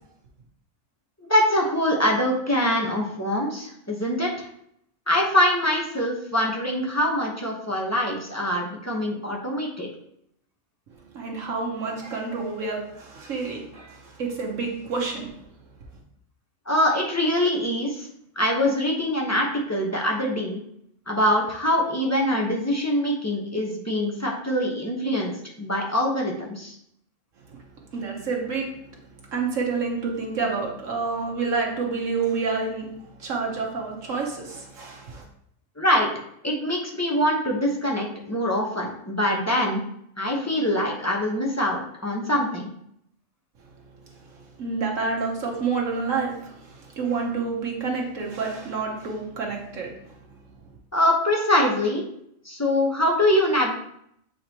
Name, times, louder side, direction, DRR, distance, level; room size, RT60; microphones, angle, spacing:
voice 1, 1.3-4.5 5.1-9.9 16.7-18.1 18.4-20.6 21.1-26.8 35.8-36.1 36.4-39.8 40.2-42.7 50.9-52.0 52.4-53.7, left 1 dB, 15° left, -2 dB, 0.9 m, -24 dB
voice 2, 11.1-15.3 27.5-27.6 27.9-28.8 29.3-32.9 33.2-35.2 44.2-50.2, right 4 dB, 75° right, -1 dB, 1.3 m, -29 dB
7.8 x 4.1 x 2.9 m, 0.72 s
omnidirectional pair, 1.4 m